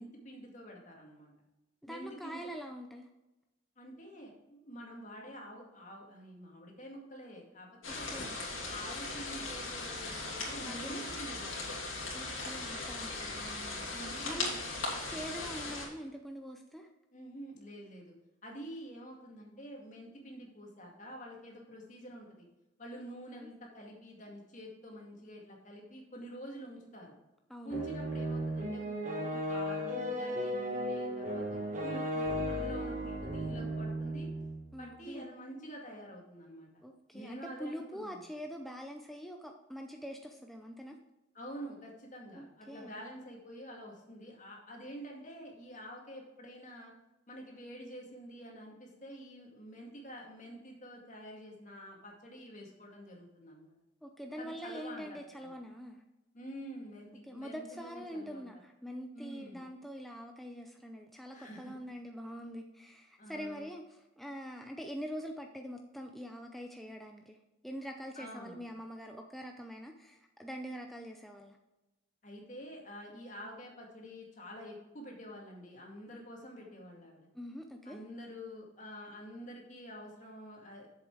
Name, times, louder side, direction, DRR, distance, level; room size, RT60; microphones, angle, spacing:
voice 1, 0.0-1.3 1.9-2.4 3.8-8.1 8.7-11.8 12.4-12.5 13.2-14.9 17.1-18.1 18.4-22.5 22.8-27.1 27.6-34.3 34.8-36.7 37.1-38.3 41.3-46.9 47.3-53.8 54.4-55.5 56.3-58.5 59.1-59.6 61.3-61.7 63.2-63.7 68.2-68.6 72.2-77.3 77.9-80.9, equal, 40° left, -1 dB, 2.2 m, -48 dB
voice 2, 1.8-3.1 7.9-8.4 10.6-11.0 12.1-14.5 15.1-16.9 23.3-23.5 27.5-27.9 34.7-35.3 36.8-41.0 42.4-43.0 54.0-56.0 57.3-67.4 67.6-71.6 77.3-78.0, equal, ahead, 3 dB, 0.5 m, -44 dB
sound 1, 7.8-15.9, left 3 dB, 85° left, 2.8 m, -38 dB
sound 2, 27.7-34.6, equal, 40° right, 1.4 m, -35 dB
7.9 x 7.2 x 4.8 m, 0.98 s
head